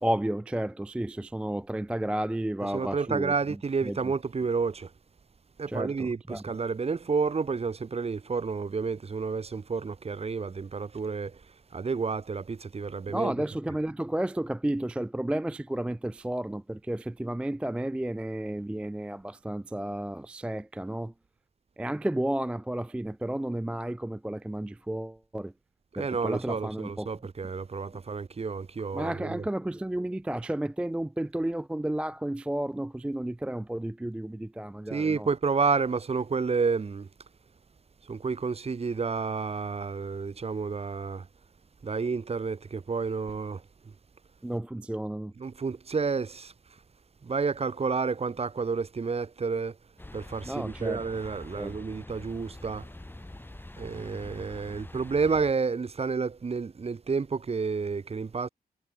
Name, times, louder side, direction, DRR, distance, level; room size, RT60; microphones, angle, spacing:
voice 1, 0.0-3.4 3.8-4.0 5.7-6.4 13.1-21.1 21.8-25.5 26.0-27.1 28.9-35.3 44.4-45.3 50.4-51.0 51.6-51.8, right 1 dB, 5° right, 0.3 m, -32 dB
voice 2, 2.7-4.9 5.6-11.4 11.7-13.3 25.9-29.4 34.9-37.1 38.1-41.2 41.8-43.6 45.4-46.5 47.2-49.7 50.1-52.8 53.8-58.5, right 5 dB, 40° right, 1.5 m, -30 dB
sound 1, 50.0-55.5, left 1 dB, 15° left, 6.1 m, -45 dB
cardioid pair, 95°, 16 cm